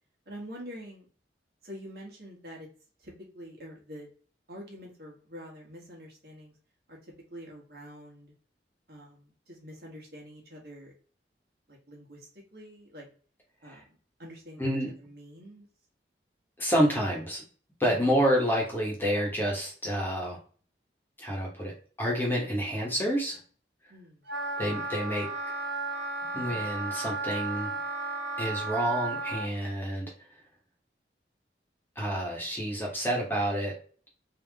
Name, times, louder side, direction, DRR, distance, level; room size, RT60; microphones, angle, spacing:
voice 1, 0.2-1.0 1.6-2.7 3.0-4.1 4.5-6.5 6.9-7.0 7.3-8.3 8.9-10.9 11.7-13.1 13.6-13.8 14.2-14.7 15.0-15.7 17.9-18.0 23.9-24.3, equal, 60° right, -2 dB, 1.6 m, -46 dB
voice 2, 14.6-14.9 16.6-17.4 17.8-20.4 21.2-23.4 24.6-25.3 26.3-27.7 28.4-30.1 31.9-33.8, equal, 10° left, -3 dB, 1.3 m, -28 dB
Wind instrument woodwind instrument, 24.3-29.5, right 3 dB, 75° right, 1.2 m, -34 dB
3.7 x 3.0 x 3.5 m, 0.41 s
head